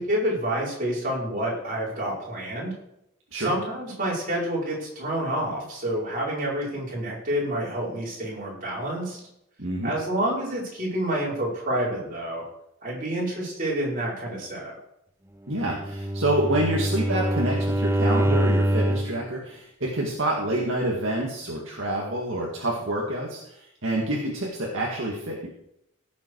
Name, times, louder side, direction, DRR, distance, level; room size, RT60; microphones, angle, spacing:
voice 1, 0.1-2.7 3.3-9.2 9.8-12.5 12.8-14.8, right 1 dB, 40° right, -5 dB, 5.3 m, -28 dB
voice 2, 9.6-9.9 15.5-25.5, right 1 dB, 60° right, -3 dB, 2.2 m, -27 dB
Bowed string instrument, 15.6-19.2, right 1 dB, 10° right, 0.7 m, -24 dB
17.0 x 7.4 x 4.8 m, 0.80 s
head